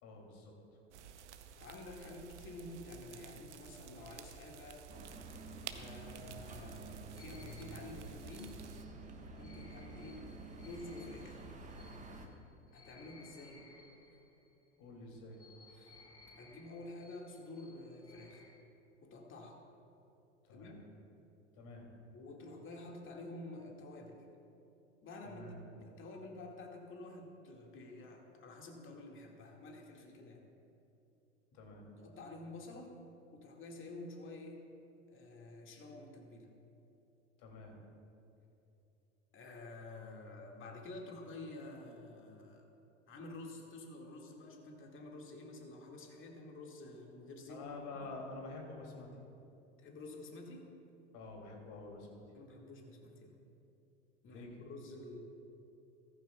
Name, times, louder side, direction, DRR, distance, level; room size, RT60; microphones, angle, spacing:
voice 1, 0.0-0.5 14.8-15.4 20.4-20.8 21.5-21.9 25.2-25.6 31.5-31.9 37.4-37.8 47.5-49.1 51.1-52.2 54.3-54.7, left 3 dB, 55° left, 0 dB, 2.8 m, -48 dB
sound 1, 0.9-8.8, right 8 dB, 75° right, 0.7 m, -52 dB
voice 2, 1.6-4.9 5.7-6.9 7.1-8.6 9.3-10.3 10.6-11.4 12.7-13.7 15.7-16.0 16.4-18.4 19.0-19.6 20.5-20.8 22.1-24.2 25.0-30.4 32.0-33.0 33.3-34.6 35.1-36.5 39.3-42.6 43.1-47.6 49.8-50.7 52.3-53.4 54.2-55.2, left 2 dB, 35° left, 1 dB, 2.0 m, -50 dB
sound 2, 4.9-12.3, right 3 dB, 20° right, 1.2 m, -50 dB
sound 3, 7.2-14.7 15.3-18.6, left 3 dB, 15° left, 1.6 m, -62 dB
15.0 x 14.0 x 2.3 m, 2.8 s
hypercardioid pair, 80°, 35 cm